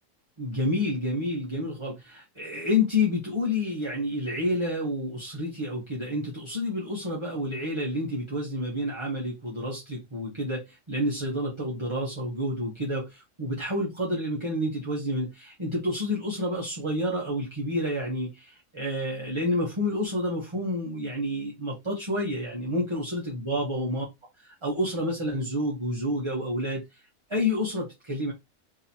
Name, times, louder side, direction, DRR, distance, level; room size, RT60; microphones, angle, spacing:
voice 1, 0.4-24.0 24.4-27.0 27.3-28.3, left 1 dB, 25° right, 0.7 m, -29 dB
3.8 x 2.8 x 2.8 m
omnidirectional pair, 1.7 m